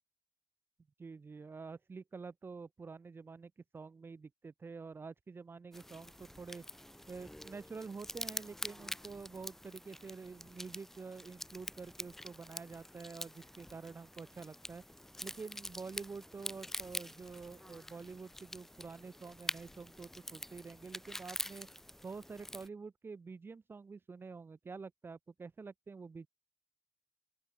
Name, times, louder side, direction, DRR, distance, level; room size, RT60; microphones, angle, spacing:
voice 1, 1.0-6.6 7.1-14.8 15.2-21.7 22.0-26.3, right 4 dB, 65° right, 1.9 m, -48 dB
sound 1, 5.7-22.7, left 1 dB, 10° left, 0.9 m, -46 dB
open air
wide cardioid pair, 105°, 4 cm